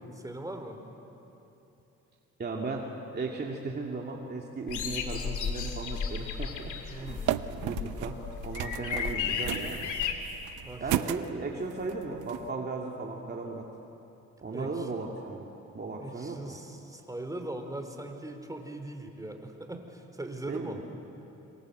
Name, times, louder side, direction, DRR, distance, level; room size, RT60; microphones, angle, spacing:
voice 1, 0.2-0.8 6.9-7.4 10.6-11.2 14.5-14.9 16.0-20.8, right 1 dB, 10° right, 5 dB, 3.5 m, -40 dB
voice 2, 2.4-2.8 3.1-9.9 10.3-10.4 10.8-13.7 14.4-15.5 15.7-16.6 20.5-20.8, right 3 dB, 35° right, 0 dB, 2.5 m, -36 dB
sound 1, 4.7-10.1, left 6 dB, 80° left, 2.6 m, -34 dB
sound 2, 7.1-12.5, right 13 dB, 85° right, 0.9 m, -35 dB
26.5 x 25.0 x 7.9 m, 2.9 s
cardioid pair, 90°, 30 cm